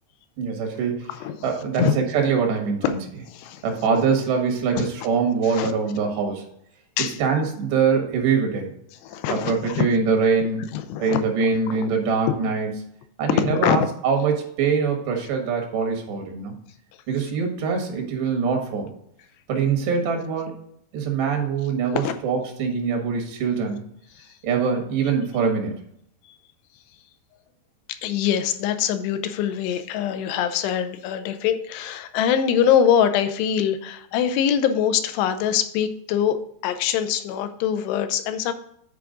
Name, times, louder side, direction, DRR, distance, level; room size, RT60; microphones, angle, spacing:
voice 1, 0.4-1.1 1.4-3.0 3.6-6.4 7.2-8.7 9.3-10.6 11.0-12.7 13.2-16.5 17.1-18.9 19.5-20.5 20.9-23.8 24.4-25.8, right 5 dB, 80° right, 3 dB, 3.7 m, -23 dB
voice 2, 1.1-1.9 2.8-2.9 3.3-3.7 4.8-4.9 5.5-5.7 7.0-7.2 9.0-9.9 10.7-11.2 13.3-13.8 22.0-22.1 24.2-24.3 28.0-36.4 36.6-38.5, left 9 dB, 85° left, 9 dB, 2.8 m, -23 dB
10.5 x 4.7 x 3.8 m, 0.71 s
omnidirectional pair, 4.8 m